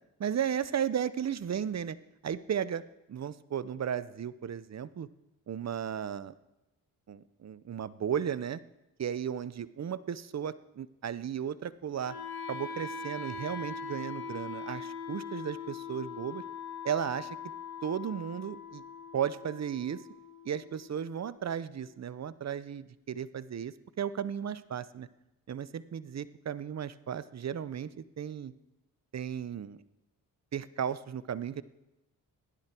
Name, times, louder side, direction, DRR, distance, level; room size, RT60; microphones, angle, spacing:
voice 1, 0.2-2.0 2.2-2.8 3.1-5.1 5.5-6.3 7.1-8.6 9.0-12.2 12.5-16.4 16.8-17.4 17.8-18.8 19.1-20.0 20.4-25.1 25.5-28.5 29.1-29.8 30.5-31.6, right 8 dB, 45° right, 17 dB, 0.7 m, -35 dB
Wind instrument woodwind instrument, 12.0-22.1, left 5 dB, 75° left, 1.6 m, -42 dB
15.5 x 11.0 x 4.5 m, 0.95 s
supercardioid pair, 45°, 39 cm